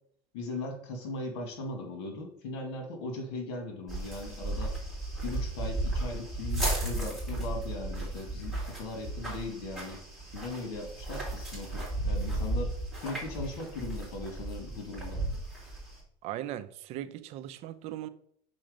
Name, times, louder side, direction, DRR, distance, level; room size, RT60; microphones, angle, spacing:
voice 1, 0.3-4.8 5.2-10.0 10.3-12.7 13.0-15.2, left 2 dB, 85° left, 2.0 m, -39 dB
sound 1, 3.9-16.0, right 2 dB, ahead, 3.1 m, -34 dB
voice 2, 16.2-18.1, right 12 dB, 55° right, 0.6 m, -38 dB
6.3 x 4.4 x 5.0 m
supercardioid pair, 130°, 13 cm